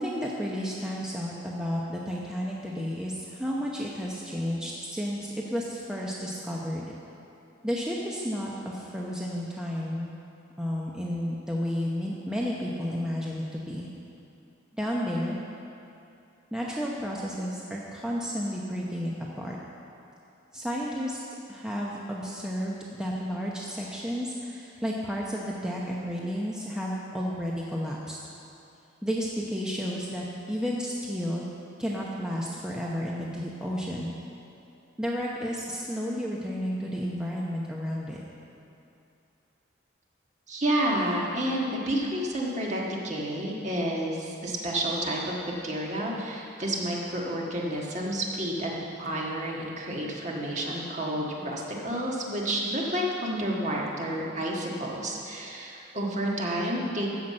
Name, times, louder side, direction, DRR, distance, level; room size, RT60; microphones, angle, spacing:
voice 1, 0.0-6.9 7.6-10.1 10.6-13.9 14.8-15.4 16.5-19.6 20.5-21.2 21.5-28.2 29.0-31.4 31.8-34.1 35.0-38.2, equal, 5° right, -4 dB, 0.8 m, -32 dB
voice 2, 40.5-45.3 45.6-57.1, right 1 dB, 35° right, -2 dB, 1.6 m, -30 dB
14.0 x 5.8 x 7.6 m, 2.7 s
head